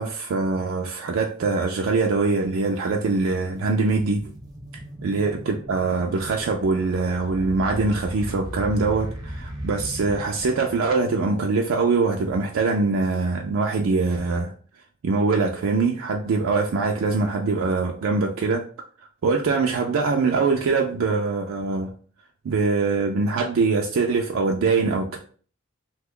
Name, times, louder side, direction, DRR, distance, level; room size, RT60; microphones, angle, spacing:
voice 1, 0.0-4.2 5.0-14.5 15.0-18.6 19.2-21.9 22.4-25.2, right 4 dB, 75° right, 2 dB, 0.4 m, -23 dB
sound 1, 2.9-3.0 3.5-11.1, equal, 20° right, 0.6 m, -37 dB
2.8 x 2.2 x 3.6 m, 0.42 s
head